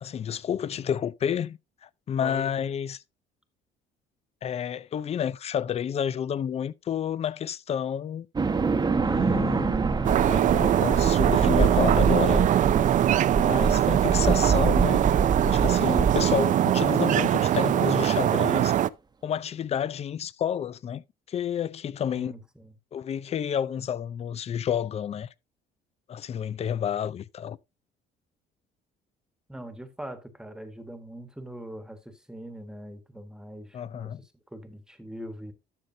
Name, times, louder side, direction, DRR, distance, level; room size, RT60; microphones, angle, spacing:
voice 1, 0.0-3.0 4.4-8.3 9.0-9.8 10.3-12.4 13.4-15.1 15.4-18.7 19.2-22.3 22.9-25.3 26.1-27.6 33.7-34.2, left 8 dB, 40° left, 0.5 m, -30 dB
sound 1, 8.4-16.9, right 4 dB, 25° right, 1.0 m, -26 dB
sound 2, 10.0-18.9, right 11 dB, 50° right, 0.5 m, -22 dB
voice 2, 22.1-22.7 29.5-34.1 34.5-35.5, right 1 dB, 5° right, 1.3 m, -42 dB
12.0 x 6.6 x 2.7 m
cardioid pair, 110°, 17 cm